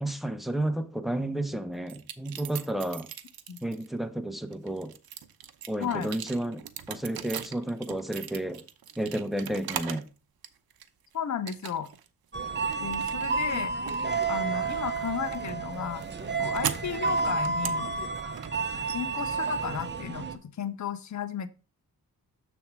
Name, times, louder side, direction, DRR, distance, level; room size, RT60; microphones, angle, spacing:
voice 1, 0.0-3.1 3.6-5.0 5.7-8.7 9.0-10.1, right 1 dB, ahead, 0.9 m, -32 dB
sound 1, 1.9-3.9 4.4-10.1 10.4-11.1 11.5-12.1 12.3-20.3, right 9 dB, 75° right, 0.8 m, -40 dB
voice 2, 11.1-11.9 12.8-13.7 14.3-16.0 16.4-17.9 18.9-21.5, left 8 dB, 50° left, 0.8 m, -34 dB
sound 2, 12.3-20.4, right 4 dB, 30° right, 0.8 m, -30 dB
7.0 x 3.5 x 6.0 m
cardioid pair, 80°, 36 cm